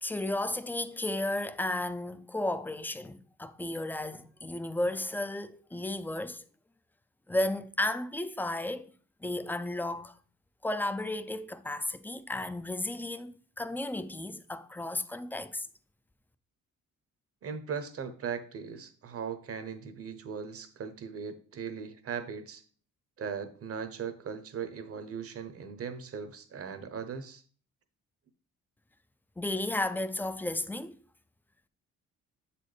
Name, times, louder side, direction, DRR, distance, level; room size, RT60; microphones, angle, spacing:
voice 1, 0.0-6.4 7.3-8.9 9.2-10.2 10.6-15.7 29.4-30.9, left 1 dB, 5° left, 0.4 m, -33 dB
voice 2, 17.4-22.6 23.2-27.4, right 6 dB, 50° right, 0.9 m, -38 dB
7.3 x 4.2 x 3.3 m
cardioid pair, 90°, 30 cm